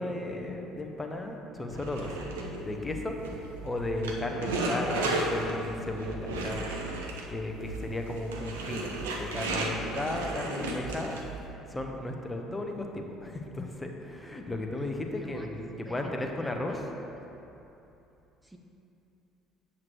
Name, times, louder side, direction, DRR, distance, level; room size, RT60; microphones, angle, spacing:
voice 1, 0.0-3.2 3.6-6.9 7.3-16.8, left 1 dB, 15° left, 2 dB, 0.9 m, -35 dB
sound 1, 1.7-11.4, right 2 dB, 75° right, 0.6 m, -34 dB
voice 2, 15.1-15.5 15.8-16.9 18.4-18.6, equal, 10° right, 2 dB, 0.6 m, -46 dB
7.7 x 7.4 x 3.1 m, 2.9 s
figure-of-eight pair, 55°, 0 cm